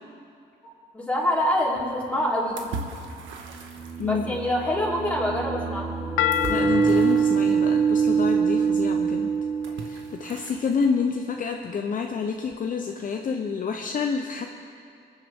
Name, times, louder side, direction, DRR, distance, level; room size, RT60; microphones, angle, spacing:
voice 1, 0.9-2.6 4.0-6.0, left 1 dB, 5° left, -5 dB, 3.6 m, -25 dB
sound 1, 1.3-10.9, right 3 dB, 75° right, 1.4 m, -42 dB
sound 2, 1.8-1.9 3.4-10.2, right 6 dB, 10° right, 1.2 m, -24 dB
voice 2, 4.0-4.4 6.5-9.3 9.7-14.5, left 5 dB, 40° left, 3 dB, 0.7 m, -28 dB
sound 3, 6.2-9.4, left 11 dB, 80° left, 0.5 m, -30 dB
26.0 x 9.2 x 3.6 m, 2.6 s
cardioid pair, 90°, 20 cm